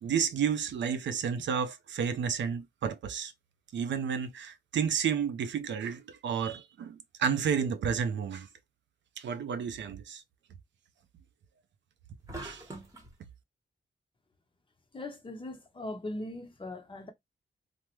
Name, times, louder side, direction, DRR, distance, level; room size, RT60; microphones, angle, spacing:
voice 1, 0.0-3.3 3.7-8.5 9.2-10.2 12.4-12.7, right 7 dB, 90° right, 0.5 m, -31 dB
sound 1, 12.3-13.1, right 2 dB, 20° right, 1.0 m, -42 dB
voice 2, 14.9-17.1, left 2 dB, 25° left, 0.8 m, -40 dB
3.4 x 2.1 x 2.9 m
wide cardioid pair, 120°, 18 cm